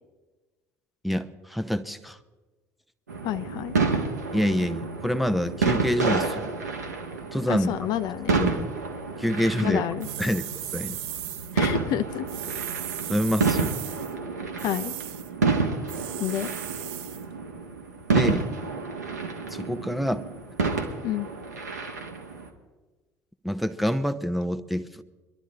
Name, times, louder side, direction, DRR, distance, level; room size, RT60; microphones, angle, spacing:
voice 1, 1.0-2.2 4.3-6.5 7.3-7.7 8.4-8.7 9.2-9.8 10.2-11.0 13.1-13.7 18.1-18.5 19.5-20.2 23.4-25.0, equal, ahead, 9 dB, 0.7 m, -26 dB
sound 1, 3.1-22.5, right 4 dB, 80° right, 1.2 m, -29 dB
voice 2, 3.2-3.7 7.5-8.4 9.6-10.1 11.5-12.3 14.6-14.9 16.2-16.5 21.0-21.3, left 12 dB, 50° left, 11 dB, 0.6 m, -29 dB
sound 2, 10.0-11.6 12.3-14.1 14.6-15.3 15.9-17.2, right 12 dB, 60° right, 0.6 m, -37 dB
23.5 x 12.0 x 3.8 m, 1.2 s
figure-of-eight pair, 60°, 9 cm